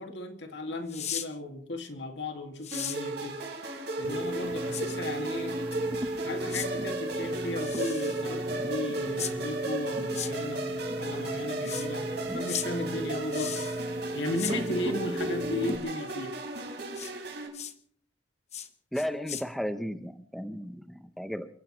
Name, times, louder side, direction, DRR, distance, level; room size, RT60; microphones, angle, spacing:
voice 1, 0.0-3.4 4.0-5.6 6.2-13.6 14.1-16.4, left 1 dB, 75° left, 5 dB, 2.3 m, -35 dB
sound 1, 0.9-1.3 2.6-3.0 4.7-4.8 6.5-6.7 7.6-8.2 9.2-9.3 10.1-10.3 11.6-11.9 12.5-12.7 13.3-13.8 14.4-14.6 16.9-17.1 17.5-17.7 18.5-18.7 19.0-19.4, left 9 dB, 40° left, 1.1 m, -36 dB
sound 2, 2.7-17.5, right 2 dB, 65° right, 4.6 m, -36 dB
sound 3, 4.0-15.8, right 1 dB, 30° right, 1.1 m, -34 dB
voice 2, 18.9-21.5, equal, ahead, 8 dB, 0.8 m, -34 dB
29.5 x 15.5 x 3.2 m, 0.62 s
head